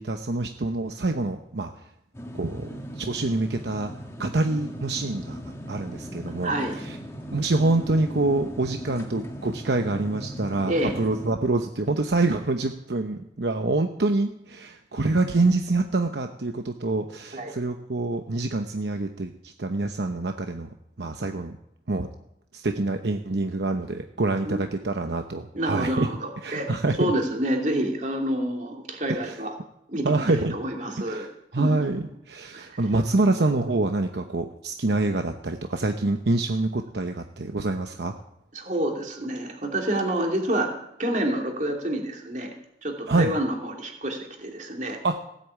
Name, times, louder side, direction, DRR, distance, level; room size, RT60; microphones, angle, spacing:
voice 1, 0.0-1.7 2.3-3.9 4.2-5.4 5.7-6.5 6.9-7.0 7.3-20.7 21.0-21.6 21.9-22.1 22.5-26.1 26.4-27.1 29.1-29.4 30.0-30.6 31.1-31.3 31.5-38.1 43.1-43.4 45.0-45.2, right 2 dB, 75° right, 5 dB, 0.9 m, -26 dB
sound 1, 2.1-11.3, equal, 15° left, 1.8 m, -38 dB
voice 2, 6.4-6.8 10.7-10.9 17.3-17.5 24.4-24.6 25.5-26.7 27.0-29.5 29.9-31.3 31.5-31.7 32.5-32.8 38.5-40.7 41.0-42.5 42.8-45.0, right 1 dB, 45° right, 2 dB, 2.8 m, -28 dB
17.0 x 8.5 x 8.5 m, 0.78 s
head